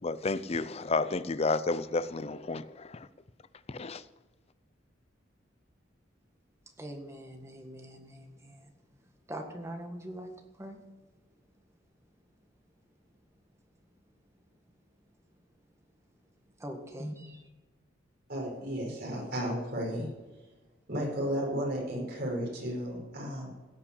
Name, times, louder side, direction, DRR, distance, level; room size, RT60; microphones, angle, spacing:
voice 1, 0.0-3.1 3.7-4.0, left 3 dB, 35° left, 0.5 m, -31 dB
voice 2, 6.8-8.7 9.3-10.8 16.6-17.4, right 1 dB, 15° right, 1.7 m, -42 dB
voice 3, 18.3-20.1 20.9-23.5, equal, 55° right, 5.5 m, -33 dB
16.5 x 5.9 x 8.5 m
head